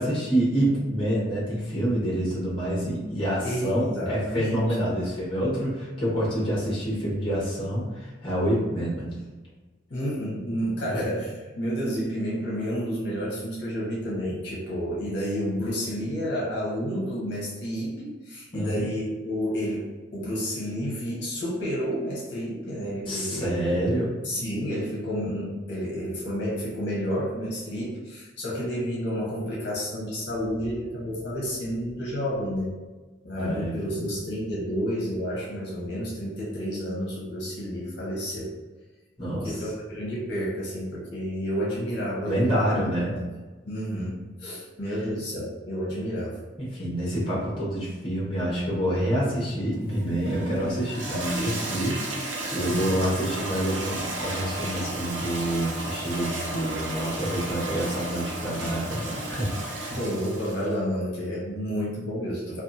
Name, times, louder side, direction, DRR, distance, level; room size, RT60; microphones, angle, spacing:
voice 1, 0.0-9.1 10.9-11.0 18.5-18.7 23.1-24.1 33.3-34.1 39.2-39.6 42.2-43.2 44.8-44.9 46.6-60.0, equal, 25° left, -6 dB, 0.9 m, -27 dB
voice 2, 3.4-4.6 9.9-32.7 33.2-38.5 39.3-42.7 43.6-46.4 52.8-53.0 59.9-62.6, equal, 60° left, -6 dB, 0.7 m, -30 dB
Toilet flush, 49.7-60.8, right 2 dB, 80° right, 0.5 m, -33 dB
2.6 x 2.3 x 2.5 m, 1.2 s
head